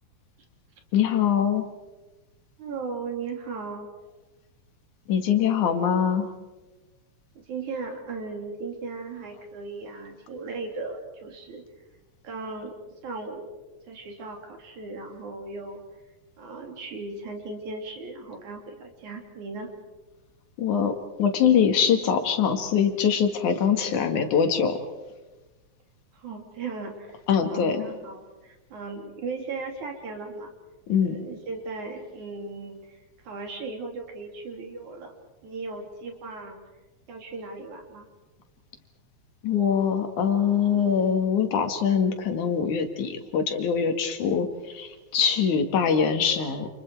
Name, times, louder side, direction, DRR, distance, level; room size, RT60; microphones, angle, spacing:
voice 1, 0.9-1.7 5.1-6.3 20.6-24.8 27.3-27.9 30.9-31.2 39.4-46.7, left 7 dB, 85° left, 6 dB, 3.3 m, -23 dB
voice 2, 2.6-3.9 7.4-11.6 12.2-12.8 13.0-13.6 13.9-15.8 16.4-19.7 26.1-27.2 27.5-30.5 31.0-35.1 35.4-36.6 37.1-38.1, right 3 dB, 75° right, 3 dB, 4.4 m, -37 dB
29.0 x 28.5 x 4.7 m, 1.1 s
omnidirectional pair, 3.4 m